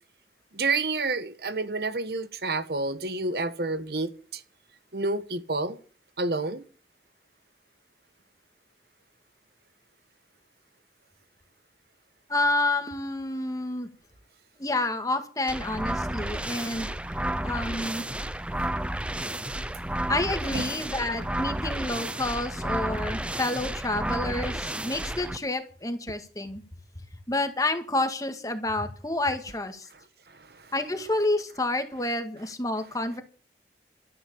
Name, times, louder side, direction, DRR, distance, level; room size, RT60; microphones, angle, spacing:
voice 1, 0.5-4.4 4.9-5.8 6.2-6.6 20.5-20.6, right 3 dB, 60° right, 1.3 m, -29 dB
voice 2, 12.3-13.9 14.6-16.9 17.4-18.0 20.1-26.6 27.3-29.9 30.7-33.2, left 2 dB, 20° left, 1.8 m, -29 dB
sound 1, 15.5-25.4, right 1 dB, 5° right, 0.6 m, -31 dB
13.0 x 9.7 x 7.0 m
head